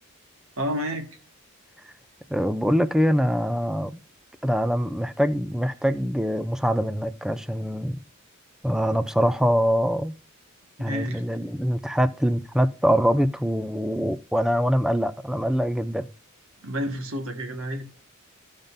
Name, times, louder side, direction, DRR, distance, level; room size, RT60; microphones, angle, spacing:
voice 1, 0.6-1.1 10.8-11.2 16.6-17.8, equal, 75° right, 1.6 m, -30 dB
voice 2, 2.3-4.0 4.4-8.0 8.6-10.2 10.8-16.1, equal, 5° right, 0.4 m, -24 dB
14.5 x 5.2 x 2.6 m
head